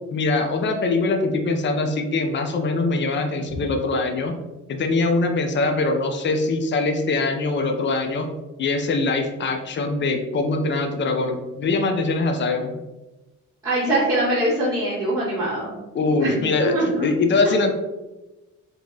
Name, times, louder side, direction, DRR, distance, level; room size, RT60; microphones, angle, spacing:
voice 1, 0.1-4.4 4.7-8.3 8.6-12.7 15.9-17.7, left 3 dB, 40° left, 4 dB, 0.6 m, -23 dB
voice 2, 13.6-15.7 16.2-17.1 17.4-17.6, right 1 dB, 10° right, -7 dB, 1.3 m, -23 dB
2.8 x 2.7 x 3.8 m, 1.1 s
cardioid pair, 90°, 30 cm